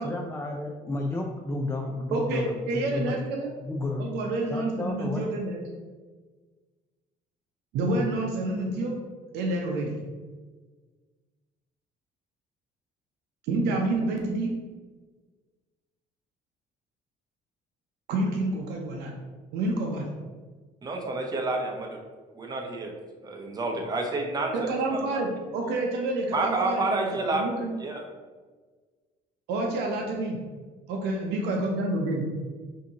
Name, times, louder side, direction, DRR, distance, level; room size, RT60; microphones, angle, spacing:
voice 1, 0.0-3.2 3.6-4.1 4.5-5.3, left 2 dB, 15° left, 1 dB, 0.4 m, -32 dB
voice 2, 2.1-3.5 4.0-5.6 7.7-9.0 9.3-9.9 13.4-14.5 18.1-19.1 19.5-20.1 24.5-27.7 29.5-30.4 30.9-32.2, right 2 dB, 90° right, 1 dB, 0.7 m, -28 dB
voice 3, 20.8-22.0 22.3-22.9 23.2-25.2 25.6-25.8 26.3-27.4 27.8-28.0, right 2 dB, 25° right, 1 dB, 0.7 m, -29 dB
5.2 x 2.8 x 2.8 m, 1.4 s
cardioid pair, 110°, 17 cm